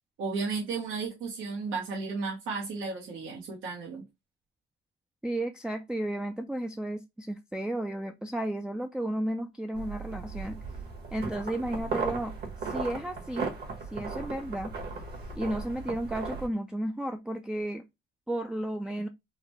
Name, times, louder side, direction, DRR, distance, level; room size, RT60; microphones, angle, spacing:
voice 1, 0.2-4.0, right 4 dB, 80° right, 1.0 m, -34 dB
voice 2, 5.2-10.6 11.1-12.3 12.6-13.5 13.9-14.7 15.4-17.8 18.3-19.1, right 1 dB, 5° right, 0.3 m, -33 dB
sound 1, 9.7-16.5, right 4 dB, 55° right, 1.4 m, -36 dB
3.8 x 2.1 x 2.9 m
cardioid pair, 90°, 20 cm